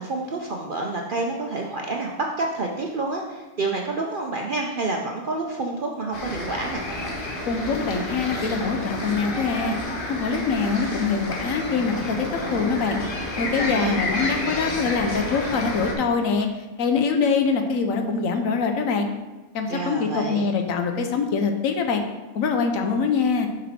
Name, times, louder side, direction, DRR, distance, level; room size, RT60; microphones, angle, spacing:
voice 1, 0.0-6.8 13.6-14.1 19.7-20.5, right 3 dB, 55° right, 0 dB, 0.6 m, -28 dB
sound 1, 6.1-15.9, left 1 dB, 40° left, 1.1 m, -30 dB
voice 2, 7.5-9.8 10.1-12.3 12.5-13.0 13.4-16.5 16.8-19.1 19.5-22.0 22.3-23.5, left 5 dB, 70° left, 5 dB, 1.1 m, -24 dB
6.6 x 5.2 x 4.2 m, 1.2 s
omnidirectional pair, 1.5 m